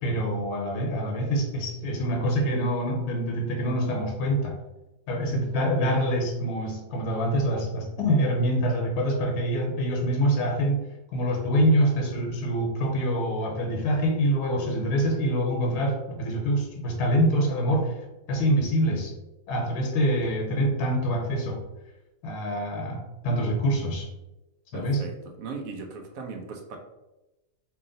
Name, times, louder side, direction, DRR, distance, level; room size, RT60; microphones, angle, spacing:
voice 1, 0.0-4.6 5.1-10.9 11.1-17.9 18.3-19.1 19.5-21.6 22.2-24.1 24.7-25.0, equal, 90° left, 1 dB, 1.2 m, -25 dB
voice 2, 24.7-25.1 25.4-26.8, right 4 dB, 65° right, 3 dB, 1.0 m, -37 dB
2.9 x 2.8 x 3.7 m, 0.99 s
omnidirectional pair, 1.7 m